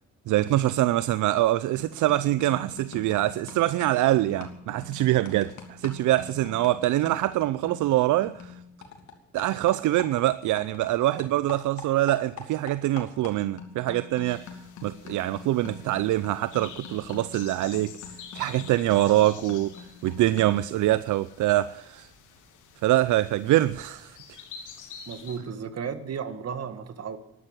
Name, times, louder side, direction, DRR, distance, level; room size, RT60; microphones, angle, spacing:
voice 1, 0.3-8.5 9.3-14.4 14.8-17.9 18.3-19.8 20.0-22.1 22.8-24.4, right 15 dB, 75° right, 0.6 m, -24 dB
sound 1, 1.3-1.5 1.8-10.9 11.2-20.7, left 5 dB, 70° left, 3.0 m, -45 dB
sound 2, 14.3-25.4, left 7 dB, 90° left, 2.9 m, -48 dB
voice 2, 25.1-27.2, right 7 dB, 55° right, 1.8 m, -34 dB
12.5 x 11.0 x 9.7 m
cardioid pair, 90°, 30 cm